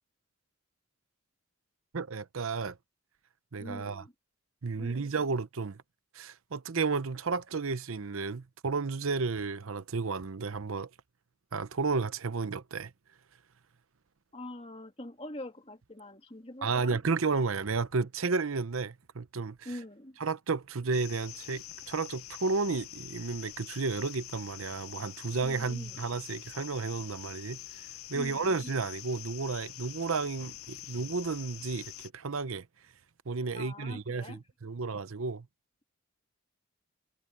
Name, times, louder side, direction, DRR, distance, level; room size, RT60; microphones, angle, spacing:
voice 1, 1.9-2.8 3.5-4.0 4.6-5.8 6.1-10.9 11.5-12.9 16.6-19.6 20.2-32.7 33.3-35.5, right 4 dB, 70° right, 0.8 m, -32 dB
voice 2, 3.6-4.1 4.7-5.1 14.3-17.0 19.6-20.2 25.4-26.0 28.1-28.7 33.5-34.4, left 1 dB, 25° left, 2.9 m, -44 dB
sound 1, 20.9-32.1, left 14 dB, 80° left, 0.6 m, -46 dB
head